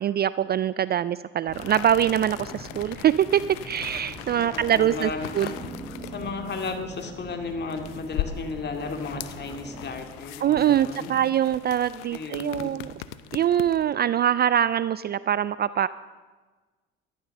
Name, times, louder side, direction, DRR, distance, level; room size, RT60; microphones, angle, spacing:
voice 1, 0.0-5.5 10.4-12.9 13.3-15.9, right 10 dB, 35° right, 17 dB, 0.4 m, -23 dB
sound 1, 1.5-13.9, left 13 dB, 80° left, 0.8 m, -40 dB
sound 2, 1.5-10.0, right 2 dB, ahead, 4.2 m, -42 dB
voice 2, 4.3-5.6 6.1-11.1 12.1-12.7, left 4 dB, 35° left, 4 dB, 2.5 m, -34 dB
14.0 x 11.5 x 6.7 m, 1.3 s
supercardioid pair, 80°, 29 cm